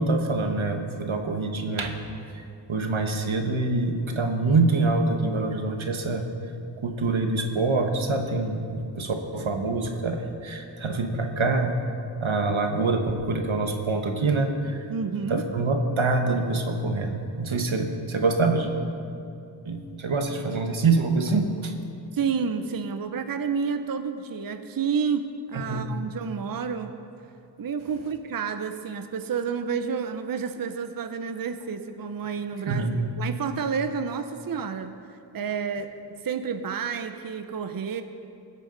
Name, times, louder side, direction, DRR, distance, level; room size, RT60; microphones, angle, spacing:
voice 1, 0.0-2.0 2.3-2.4 2.7-6.3 6.8-11.8 12.2-14.8 15.3-18.7 19.6-21.7 25.7-25.9 32.7-33.0, right 3 dB, 80° right, 4 dB, 1.2 m, -25 dB
voice 2, 14.9-15.4 22.1-26.9 27.6-35.0 35.3-35.9 36.2-38.0, right 6 dB, 50° right, 8 dB, 0.6 m, -30 dB
20.0 x 8.2 x 3.9 m, 2.6 s
wide cardioid pair, 60°, 47 cm